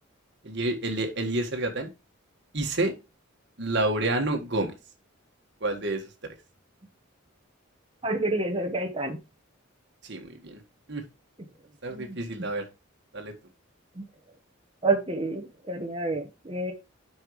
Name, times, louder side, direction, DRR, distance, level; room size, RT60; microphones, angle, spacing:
voice 1, 0.4-1.9 2.5-2.9 3.6-4.7 5.6-6.0 10.0-10.6 10.9-11.0 11.8-12.6 13.1-13.3, right 2 dB, 55° right, 4 dB, 1.6 m, -28 dB
voice 2, 8.0-9.2 11.9-12.4 14.0-14.1 14.8-16.7, right 2 dB, 25° right, 3 dB, 1.2 m, -29 dB
8.8 x 5.6 x 3.1 m, 0.27 s
head